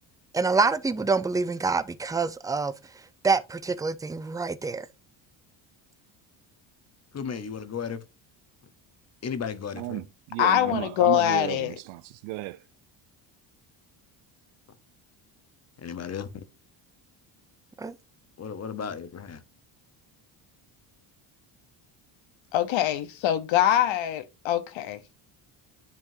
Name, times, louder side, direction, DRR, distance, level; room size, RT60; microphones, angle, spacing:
voice 1, 0.3-2.7 3.2-4.9 17.8-17.9, right 4 dB, 10° right, 0.4 m, -26 dB
voice 2, 7.1-8.0 9.2-10.0 10.7-10.8 15.8-16.4 18.4-19.4, left 6 dB, 30° left, 1.0 m, -34 dB
voice 3, 9.8-12.6, right 18 dB, 75° right, 0.5 m, -34 dB
voice 4, 10.4-11.7 22.5-25.1, left 11 dB, 70° left, 1.0 m, -24 dB
10.5 x 3.6 x 2.7 m
cardioid pair, 95°, 48 cm